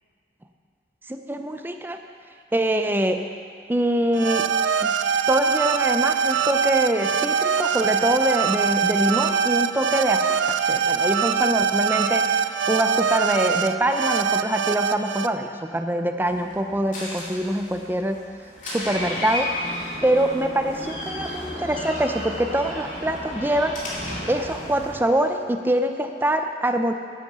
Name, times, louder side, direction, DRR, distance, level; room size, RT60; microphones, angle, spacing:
voice 1, 1.1-2.0 2.5-3.2 3.7-4.5 4.8-4.9 5.3-18.2 18.6-19.5 20.0-23.8 24.3-26.9, right 1 dB, 10° right, 6 dB, 0.5 m, -24 dB
sound 1, 4.1-15.3, right 6 dB, 75° right, 0.4 m, -23 dB
Door, 16.2-24.9, left 1 dB, 45° left, 2.5 m, -33 dB
10.5 x 7.8 x 6.8 m, 2.2 s
head